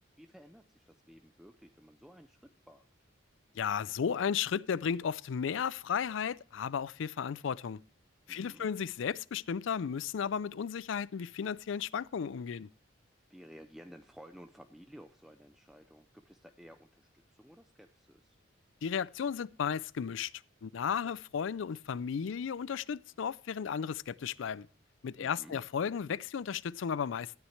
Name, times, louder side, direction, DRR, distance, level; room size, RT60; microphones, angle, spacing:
voice 1, 0.2-2.8 8.3-8.7 13.3-18.4 21.0-21.2 25.2-25.6, equal, ahead, 0.5 m, -54 dB
voice 2, 3.6-7.8 8.3-12.7 18.8-20.3 20.6-24.7 25.0-27.3, left 7 dB, 70° left, 0.4 m, -34 dB
13.0 x 9.4 x 3.2 m
head